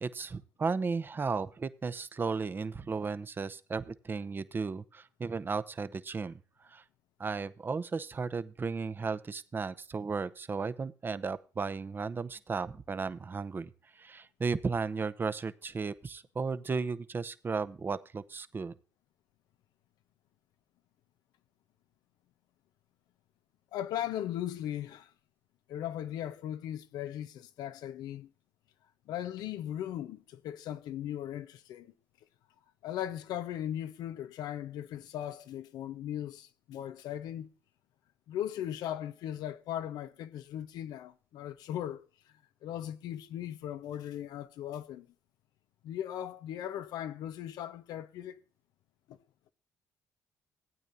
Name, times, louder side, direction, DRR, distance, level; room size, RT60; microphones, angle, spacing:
voice 1, 0.0-6.8 7.2-18.7, right 4 dB, 30° right, 0.8 m, -35 dB
voice 2, 23.7-25.1 25.7-28.3 29.1-31.9 32.8-37.5 38.3-42.0 42.6-45.1 45.8-48.4 49.1-49.2, left 11 dB, 85° left, 0.8 m, -38 dB
15.0 x 9.0 x 2.7 m
cardioid pair, 90°, 7 cm